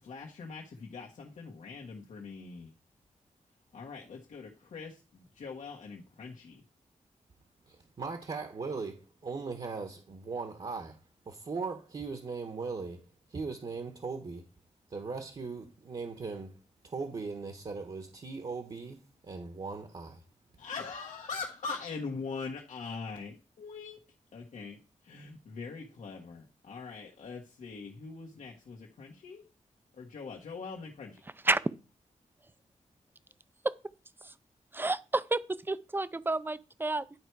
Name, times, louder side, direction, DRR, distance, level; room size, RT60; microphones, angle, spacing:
voice 1, 0.0-2.7 3.7-6.6 20.6-24.0 24.3-24.8 25.0-29.4 30.0-31.2, left 4 dB, 80° left, 1.5 m, -42 dB
voice 2, 7.7-11.0 11.3-13.0 13.3-14.4 14.9-16.5 16.8-19.0 19.2-20.2, right 4 dB, 45° right, 1.2 m, -39 dB
voice 3, 34.7-37.2, right 2 dB, 15° right, 0.4 m, -30 dB
11.0 x 4.6 x 4.7 m
wide cardioid pair, 125°, 13 cm